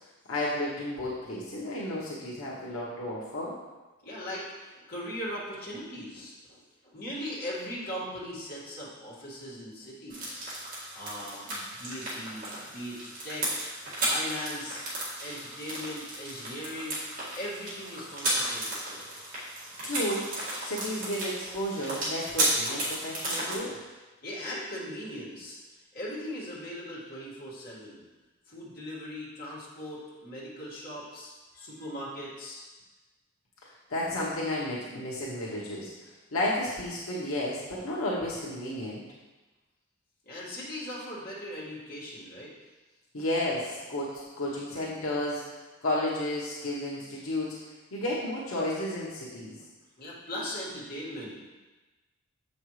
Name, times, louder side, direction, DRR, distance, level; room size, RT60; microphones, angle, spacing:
voice 1, 0.3-3.6 19.8-23.8 33.9-35.9 36.3-39.0 43.1-45.4 45.8-47.6 47.9-49.6, left 1 dB, 85° left, -5 dB, 1.0 m, -32 dB
voice 2, 4.0-10.4 10.9-13.7 14.0-14.8 15.2-17.0 17.4-19.1 24.2-25.6 25.9-28.0 28.5-32.6 40.3-42.5 50.0-51.5, equal, 45° left, -7 dB, 1.9 m, -39 dB
sound 1, 10.1-23.6, right 1 dB, 45° right, 2.0 m, -34 dB
7.1 x 5.4 x 3.2 m, 1.2 s
head